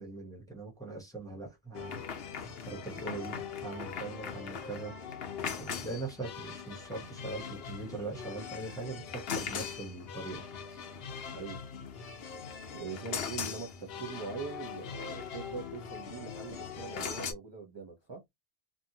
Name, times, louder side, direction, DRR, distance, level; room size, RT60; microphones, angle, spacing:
voice 1, 0.0-2.0 2.7-4.9 5.6-10.4 10.7-10.8, right 3 dB, 5° left, 0.8 m, -41 dB
sound 1, 1.7-17.3, left 6 dB, 65° left, 0.9 m, -40 dB
voice 2, 11.3-11.6 12.7-18.2, right 5 dB, 30° right, 0.5 m, -42 dB
2.7 x 2.4 x 2.7 m
omnidirectional pair, 1.1 m